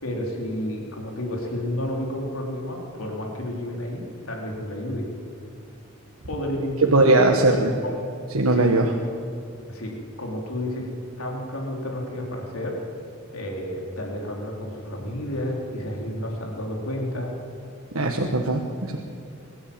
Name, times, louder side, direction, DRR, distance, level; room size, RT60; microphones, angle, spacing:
voice 1, 0.0-5.0 6.3-7.3 7.8-8.1 8.5-8.7 9.7-9.9 10.2-10.9 11.2-12.8 13.3-17.3, left 1 dB, 85° left, 0 dB, 4.1 m, -31 dB
voice 2, 6.9-7.7 8.3-8.9 17.9-19.0, right 2 dB, 85° right, 1 dB, 1.5 m, -19 dB
22.0 x 13.5 x 8.9 m, 2.4 s
head